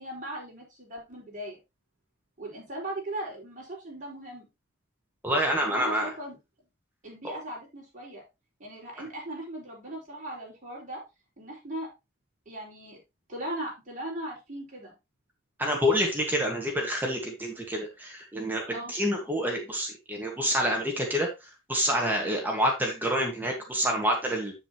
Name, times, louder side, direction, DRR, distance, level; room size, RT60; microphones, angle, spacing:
voice 1, 0.0-1.6 2.4-4.5 5.7-6.4 7.0-8.2 8.6-11.0 11.4-11.9 12.4-13.0 13.3-14.9 18.7-18.9, right 1 dB, 40° right, -3 dB, 4.8 m, -38 dB
voice 2, 5.2-6.1 7.2-7.3 15.6-21.3 21.7-24.5, equal, 10° right, 0 dB, 1.6 m, -27 dB
7.9 x 7.5 x 3.0 m, 0.25 s
head